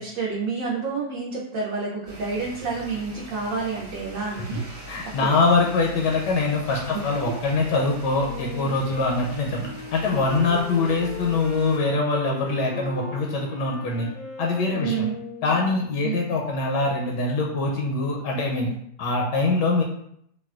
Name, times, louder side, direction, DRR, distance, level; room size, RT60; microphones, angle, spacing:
voice 1, 0.0-4.6 5.0-5.3 6.9-7.4 14.8-15.1 16.0-16.4, right 5 dB, 70° right, -4 dB, 0.8 m, -29 dB
sound 1, 2.1-11.8, right 1 dB, 35° right, 0.5 m, -42 dB
voice 2, 4.9-14.1 14.4-15.0 15.4-18.7 19.0-19.8, left 3 dB, 80° left, 0 dB, 1.2 m, -23 dB
Wind instrument woodwind instrument, 8.2-15.9, left 5 dB, 65° left, 0.8 m, -38 dB
4.1 x 2.2 x 2.3 m, 0.71 s
omnidirectional pair, 1.8 m